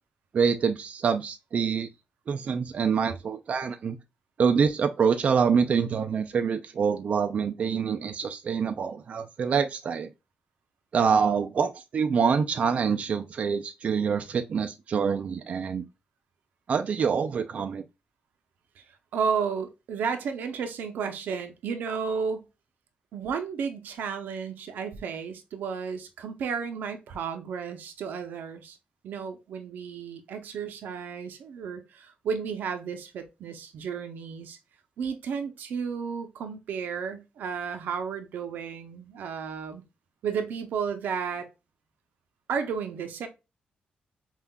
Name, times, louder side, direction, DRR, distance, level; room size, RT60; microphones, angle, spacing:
voice 1, 0.3-1.9 2.3-4.0 4.4-10.1 10.9-15.8 16.7-17.8, right 6 dB, 50° right, 0.4 m, -26 dB
voice 2, 19.1-22.5 23.1-28.8 29.0-34.6 35.0-39.8 40.2-41.5 42.5-43.3, right 6 dB, 85° right, 0.7 m, -33 dB
5.5 x 2.5 x 2.3 m
wide cardioid pair, 135°, 3 cm